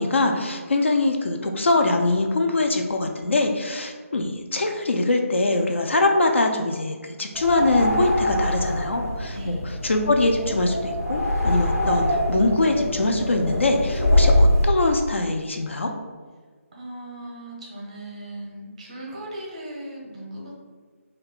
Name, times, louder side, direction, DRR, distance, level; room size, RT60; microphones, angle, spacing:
voice 1, 0.0-15.9, left 2 dB, 55° left, 3 dB, 0.3 m, -23 dB
sound 1, 7.3-14.7, left 1 dB, 85° left, 0.8 m, -23 dB
voice 2, 16.7-20.5, right 1 dB, 25° right, -3 dB, 0.6 m, -37 dB
2.6 x 2.3 x 3.6 m, 1.5 s
figure-of-eight pair, 155°, 8 cm